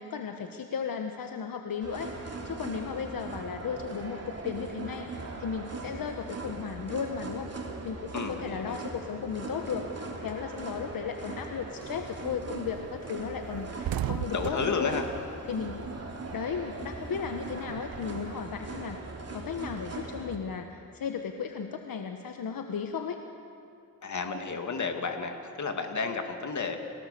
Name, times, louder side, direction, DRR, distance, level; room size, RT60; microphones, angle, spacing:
voice 1, 0.0-7.5 7.8-15.0 15.5-15.9 16.3-19.0 19.3-23.2, left 6 dB, 80° left, 5 dB, 1.2 m, -35 dB
sound 1, 1.8-20.4, right 3 dB, 45° right, 3.3 m, -40 dB
voice 2, 8.1-8.8 14.3-15.0 24.0-26.8, left 5 dB, 55° left, 4 dB, 2.5 m, -32 dB
sound 2, 11.7-12.1 12.5-12.6 12.9-13.0 13.3-16.3 16.6-18.3, right 11 dB, 85° right, 0.7 m, -37 dB
29.5 x 19.0 x 6.9 m, 2.6 s
cardioid pair, 90°, 34 cm